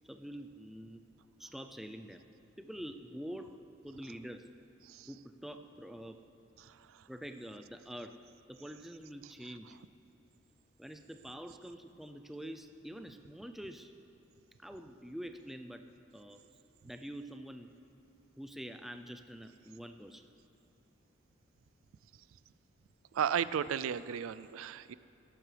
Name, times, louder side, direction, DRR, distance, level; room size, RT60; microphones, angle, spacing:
voice 1, 0.0-1.1 1.4-2.3 2.6-3.6 3.8-4.5 5.1-6.2 7.1-9.8 10.8-13.9 14.6-15.9 16.1-16.4 16.8-17.7 18.4-20.3, equal, ahead, 6 dB, 0.4 m, -46 dB
voice 2, 6.6-7.0 23.1-24.9, right 8 dB, 80° right, 15 dB, 0.3 m, -35 dB
19.5 x 12.0 x 3.4 m, 2.8 s
head